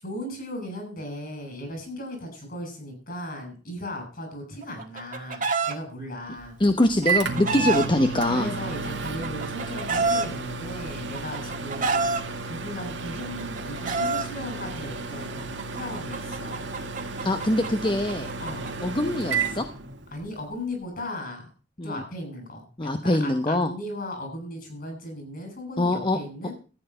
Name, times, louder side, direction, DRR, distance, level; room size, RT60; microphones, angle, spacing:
voice 1, 0.0-6.6 7.5-7.9 8.3-12.1 12.5-16.6 18.4-18.8 20.1-21.4 21.8-26.5, left 1 dB, 55° left, 4 dB, 7.2 m, -37 dB
Chicken rooster, 4.6-5.7 6.8-7.9 8.8-10.3 11.1-12.2 13.2-14.3 15.4-18.7, right 3 dB, 45° right, 1.7 m, -27 dB
Microwave oven, 6.4-20.4, right 4 dB, 85° right, 2.1 m, -33 dB
voice 2, 6.6-8.5 17.2-18.3 18.8-19.7 21.8-22.0 22.8-23.7 25.8-26.2, left 1 dB, 25° left, 7 dB, 0.9 m, -23 dB
14.0 x 9.4 x 5.7 m, 0.37 s
head